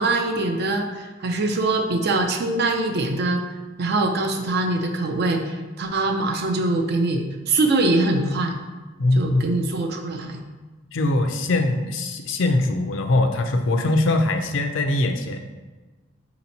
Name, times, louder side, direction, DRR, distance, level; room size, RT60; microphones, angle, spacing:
voice 1, 0.0-3.4 3.8-8.6 9.2-10.4, right 2 dB, 55° right, 4 dB, 0.5 m, -23 dB
voice 2, 9.0-9.6 10.9-15.4, left 2 dB, 70° left, 5 dB, 0.5 m, -22 dB
4.2 x 2.9 x 4.1 m, 1.2 s
head